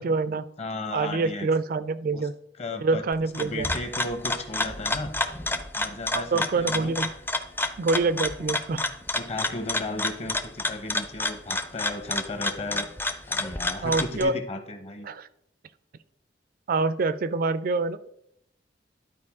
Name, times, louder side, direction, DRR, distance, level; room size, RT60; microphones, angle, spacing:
voice 1, 0.0-0.4 0.9-2.3 2.8-3.7 6.1-7.1 7.8-8.8 13.8-14.3 15.0-15.3 16.7-18.1, right 3 dB, 55° right, 14 dB, 0.4 m, -26 dB
voice 2, 0.6-1.5 2.1-2.3 2.6-3.0 3.4-5.1 5.7-7.0 8.0-8.8 9.1-12.9 13.3-15.1, left 2 dB, 40° left, 8 dB, 0.9 m, -35 dB
sound 1, 3.1-14.2, left 2 dB, 10° left, 0.4 m, -30 dB
12.0 x 4.4 x 3.6 m, 0.77 s
head